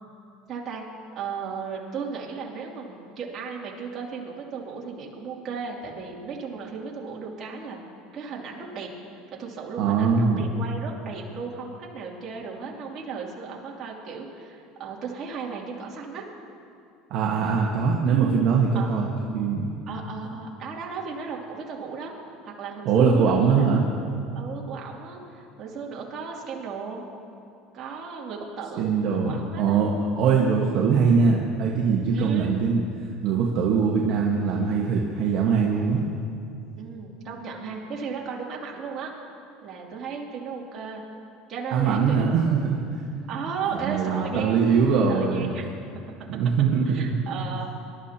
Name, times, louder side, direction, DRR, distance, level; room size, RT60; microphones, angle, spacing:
voice 1, 0.5-0.8 1.1-7.8 8.1-8.9 9.4-16.2 18.7-18.9 19.9-22.1 22.4-23.7 24.3-27.0 27.7-28.9 29.2-29.8 32.1-32.6 36.8-39.1 39.6-41.0 41.5-42.7 43.3-44.6 45.1-45.7 46.8-47.7, right 5 dB, 40° right, -3 dB, 2.8 m, -35 dB
voice 2, 9.8-10.5 17.1-19.1 19.3-19.7 22.8-23.9 28.8-29.9 30.2-32.8 33.2-36.0 41.7-43.0 43.7-45.5 46.3-47.2, right 5 dB, 55° right, -2 dB, 1.4 m, -22 dB
25.5 x 12.5 x 2.9 m, 2.5 s
supercardioid pair, 130°, 0 cm